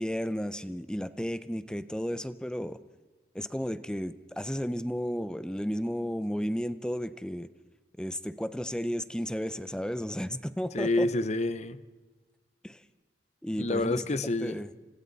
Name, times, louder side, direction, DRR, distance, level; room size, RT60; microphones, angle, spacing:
voice 1, 0.0-2.8 3.3-7.5 8.0-11.1 12.6-12.8 13.4-14.0 14.4-14.7, equal, 5° left, 0.7 m, -33 dB
voice 2, 10.7-11.8 13.6-14.6, left 2 dB, 40° left, 0.8 m, -28 dB
29.0 x 25.5 x 4.2 m
head